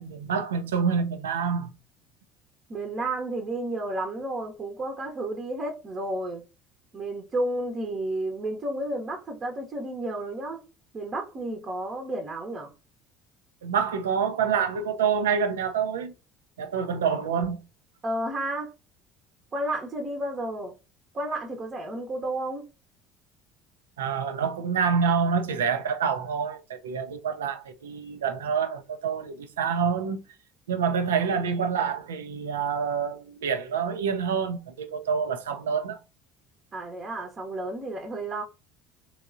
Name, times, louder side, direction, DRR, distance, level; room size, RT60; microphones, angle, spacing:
voice 1, 0.0-1.7 13.6-16.1 16.6-17.6 24.0-30.2 30.7-36.0, right 6 dB, 75° right, 0.5 m, -27 dB
voice 2, 2.7-6.4 6.9-10.6 10.9-12.7 18.0-18.7 19.5-20.7 21.1-22.6 36.7-38.4, right 1 dB, 35° right, 0.8 m, -31 dB
3.6 x 3.1 x 2.5 m
figure-of-eight pair, 60°, 0 cm